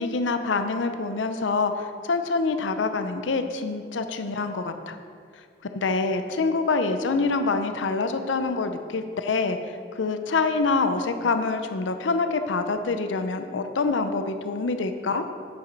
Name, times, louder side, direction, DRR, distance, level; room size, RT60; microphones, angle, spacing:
voice 1, 0.0-5.0 5.7-15.3, left 3 dB, 90° left, 8 dB, 0.6 m, -26 dB
8.8 x 6.9 x 5.3 m, 2.2 s
head